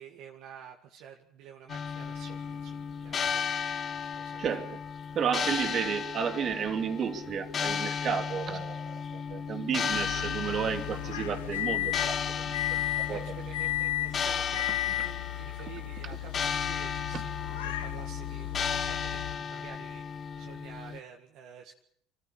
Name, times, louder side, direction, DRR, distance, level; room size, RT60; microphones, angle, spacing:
voice 1, 0.0-4.5 5.4-5.8 12.0-12.1 12.8-17.3 17.6-21.7, right 8 dB, 65° right, 2 dB, 1.9 m, -50 dB
sound 1, 1.7-21.0, left 6 dB, 40° left, 1.4 m, -35 dB
voice 2, 4.4-4.8 5.1-13.2 17.1-17.2, right 7 dB, 45° right, 6 dB, 2.9 m, -32 dB
sound 2, 9.9-19.4, left 15 dB, 85° left, 1.0 m, -34 dB
25.0 x 14.5 x 8.8 m, 0.70 s
hypercardioid pair, 70°, 0 cm